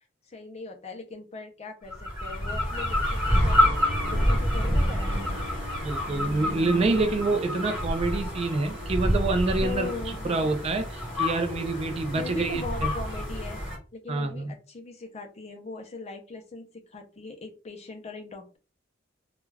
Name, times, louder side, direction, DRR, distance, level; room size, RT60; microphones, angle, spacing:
voice 1, 0.3-3.8 4.1-5.4 9.6-10.3 12.1-13.6 13.9-18.6, left 3 dB, 30° left, 0.5 m, -40 dB
sound 1, 1.9-13.8, equal, ahead, 1.3 m, -28 dB
Bowed string instrument, 2.7-8.8, right 1 dB, 70° right, 0.8 m, -44 dB
voice 2, 5.8-9.9 10.2-12.6 14.1-14.5, right 3 dB, 30° right, 0.3 m, -27 dB
2.3 x 2.3 x 3.2 m
head